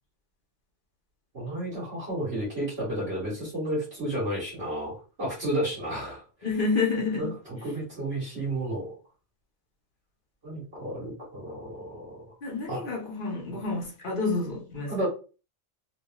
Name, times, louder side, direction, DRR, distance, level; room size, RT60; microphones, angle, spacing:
voice 1, 1.3-6.2 7.1-8.9 10.4-12.2 12.7-12.8 14.9-15.1, right 1 dB, 60° right, 1.5 m, -32 dB
voice 2, 6.4-7.3 12.4-14.9, left 4 dB, 50° left, 0.9 m, -29 dB
3.1 x 2.5 x 2.2 m
omnidirectional pair, 1.2 m